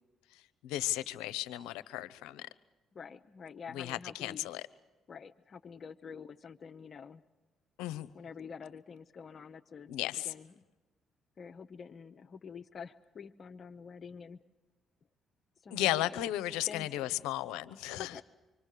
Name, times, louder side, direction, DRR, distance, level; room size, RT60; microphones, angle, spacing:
voice 1, 0.3-2.5 3.7-4.6 7.8-8.1 9.9-10.3 15.7-18.2, left 15 dB, 85° left, 14 dB, 0.7 m, -35 dB
voice 2, 2.9-4.5 5.1-7.2 8.1-10.6 11.4-14.4 15.6-16.1 16.7-17.2 17.9-18.2, left 6 dB, 50° left, 7 dB, 0.8 m, -47 dB
25.5 x 24.5 x 6.7 m, 1.2 s
supercardioid pair, 60°, 0 cm